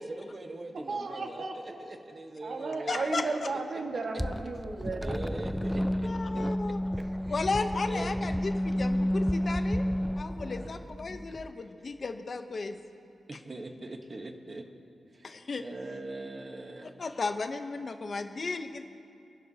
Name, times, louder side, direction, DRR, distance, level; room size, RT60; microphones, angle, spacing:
voice 1, 0.0-3.1 3.9-4.0 5.0-6.1 7.2-7.4 7.9-8.1 11.6-11.9 13.3-14.6 15.1-15.3 15.6-16.9, right 2 dB, 25° right, 4 dB, 1.1 m, -42 dB
voice 2, 0.9-1.8 2.4-5.1, right 3 dB, 50° right, 1 dB, 1.7 m, -34 dB
voice 3, 2.9-3.5 6.0-6.8 7.3-9.8 10.2-12.8 15.2-15.6 17.0-18.8, left 3 dB, 40° left, 7 dB, 0.8 m, -34 dB
sound 1, 4.2-11.5, equal, ahead, 0.3 m, -31 dB
28.5 x 11.5 x 2.8 m, 2.7 s
wide cardioid pair, 150°, 0 cm